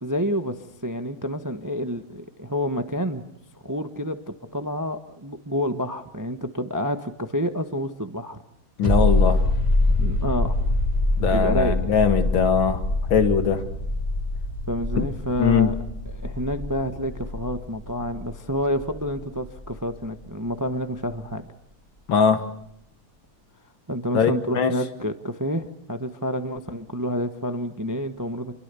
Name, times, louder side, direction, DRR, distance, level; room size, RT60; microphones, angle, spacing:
voice 1, 0.0-3.2 3.6-8.4 10.0-10.5 11.3-11.8 14.7-15.7 16.1-21.5 23.9-28.6, equal, 15° right, 7 dB, 0.8 m, -28 dB
voice 2, 8.8-9.4 11.2-12.8 13.1-13.6 15.0-15.1 15.4-15.7 22.1-22.4 24.1-24.7, left 6 dB, 65° left, 8 dB, 2.5 m, -21 dB
sound 1, 8.8-20.2 20.5-20.6, left 2 dB, 20° left, 2.8 m, -25 dB
28.0 x 22.5 x 6.9 m, 0.73 s
omnidirectional pair, 2.4 m